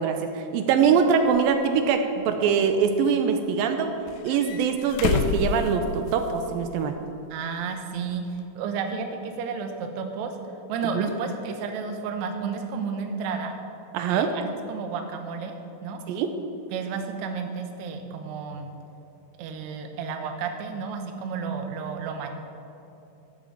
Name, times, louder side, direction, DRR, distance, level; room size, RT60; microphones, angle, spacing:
voice 1, 0.0-4.0 4.2-6.9 10.9-11.1 13.9-14.3 16.1-16.3, right 6 dB, 85° right, 6 dB, 2.4 m, -23 dB
sound 1, 1.3-1.4 2.3-3.2 4.1-6.4 6.7-6.8 8.4-8.5, left 7 dB, 80° left, 1.9 m, -30 dB
voice 2, 7.3-10.3 10.7-13.5 14.1-14.4 14.7-15.5 15.8-16.0 16.7-18.7 19.4-22.4, right 5 dB, 65° right, 5 dB, 2.0 m, -32 dB
14.0 x 6.7 x 7.4 m, 2.8 s
omnidirectional pair, 4.2 m